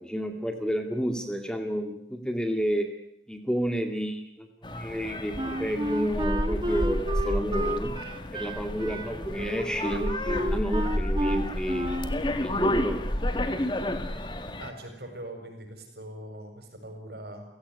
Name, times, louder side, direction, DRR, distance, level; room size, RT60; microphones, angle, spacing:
voice 1, 0.0-2.9 3.3-7.9 8.3-13.1, equal, 5° left, 5 dB, 2.1 m, -31 dB
sound 1, 4.6-14.7, left 1 dB, 25° left, 1.9 m, -30 dB
Wind instrument woodwind instrument, 5.4-12.2, right 1 dB, 25° right, 1.8 m, -32 dB
voice 2, 14.6-17.5, right 1 dB, 65° right, 5 dB, 7.5 m, -41 dB
29.5 x 17.0 x 9.8 m, 0.77 s
head